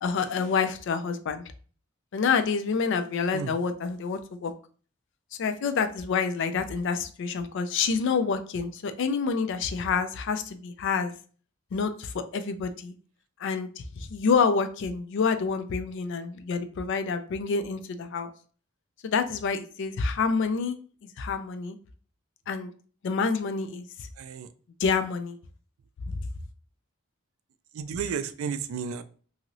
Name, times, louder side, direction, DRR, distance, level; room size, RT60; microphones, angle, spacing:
voice 1, 0.0-1.4 2.1-4.5 5.4-11.1 11.7-12.9 13.4-13.7 13.9-18.3 19.0-20.8 21.2-21.8 22.5-22.7 23.0-23.9 24.8-25.4 26.1-26.2, left 5 dB, 65° left, 9 dB, 0.4 m, -27 dB
voice 2, 24.2-24.5 27.7-29.0, right 6 dB, 80° right, 12 dB, 0.3 m, -32 dB
2.9 x 2.7 x 2.5 m, 0.41 s
head